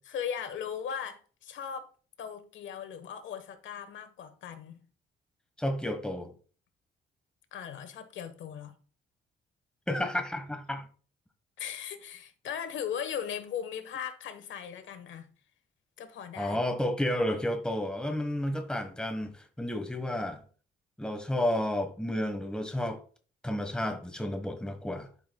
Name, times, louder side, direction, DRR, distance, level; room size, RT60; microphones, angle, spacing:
voice 1, 0.1-1.9 2.2-4.8 7.5-8.7 11.6-15.3 16.0-16.6, left 8 dB, 75° left, 1.3 m, -38 dB
voice 2, 5.6-6.3 9.9-10.9 16.4-20.4 21.0-23.0 23.4-25.1, left 1 dB, 5° left, 1.3 m, -31 dB
12.0 x 5.1 x 2.3 m
cardioid pair, 90°, 20 cm